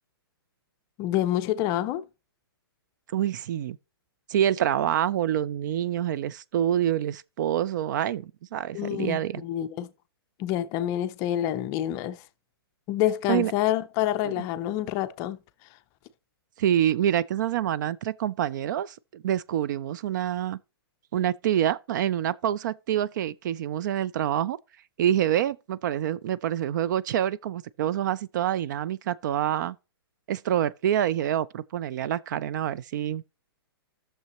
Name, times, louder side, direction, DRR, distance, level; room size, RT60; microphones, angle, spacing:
voice 1, 1.0-2.0 8.7-9.9 10.4-12.2 12.9-15.4, left 12 dB, 25° left, 0.5 m, -27 dB
voice 2, 3.1-3.8 4.3-9.4 13.3-13.5 14.2-14.4 16.6-20.6 21.1-24.6 25.0-29.8 30.3-33.2, right 10 dB, 50° right, 0.4 m, -26 dB
12.5 x 6.6 x 2.9 m
hypercardioid pair, 145°, 13 cm